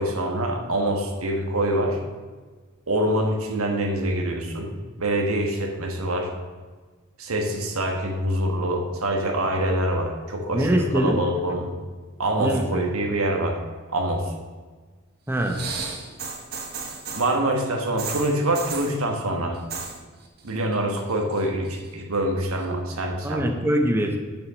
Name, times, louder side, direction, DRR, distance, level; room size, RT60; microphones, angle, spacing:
voice 1, 0.0-2.0 2.9-6.3 7.2-11.7 12.2-13.6 13.9-14.3 17.1-19.6 20.4-23.4, right 1 dB, 90° right, 2 dB, 1.5 m, -25 dB
voice 2, 10.5-11.2 12.4-12.8 15.3-15.6 23.2-24.2, right 1 dB, 10° right, 3 dB, 0.8 m, -23 dB
sound 1, 15.4-17.4 18.0-19.0 19.5-20.0 20.2-20.7 21.1-21.9 22.6-22.7, right 5 dB, 50° right, 1.3 m, -34 dB
7.2 x 6.1 x 6.3 m, 1.4 s
head